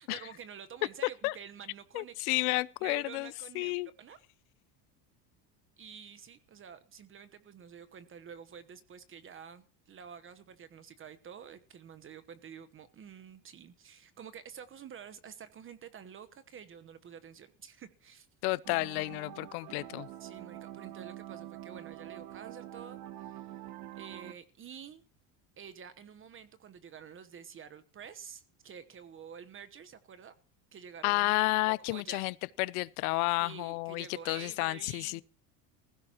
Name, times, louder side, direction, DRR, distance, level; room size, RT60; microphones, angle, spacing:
voice 1, 0.0-4.2 5.8-18.3 20.2-23.5 24.0-25.0 25.6-30.3 30.7-32.2 33.4-35.2, right 7 dB, 30° right, 1.1 m, -49 dB
voice 2, 1.9-3.9 18.4-20.1 31.0-35.2, left 23 dB, 90° left, 0.7 m, -31 dB
sound 1, 18.6-24.3, right 13 dB, 55° right, 1.4 m, -46 dB
20.0 x 16.0 x 3.0 m
supercardioid pair, 135°, 43 cm